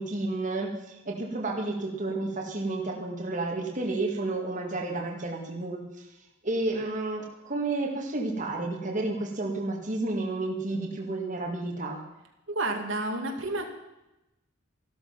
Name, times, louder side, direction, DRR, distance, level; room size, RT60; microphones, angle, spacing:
voice 1, 0.0-6.1 6.4-12.0, right 2 dB, 35° right, 0 dB, 2.0 m, -31 dB
voice 2, 12.5-13.7, right 2 dB, 65° right, 2 dB, 2.3 m, -30 dB
14.0 x 13.0 x 5.9 m, 0.94 s
head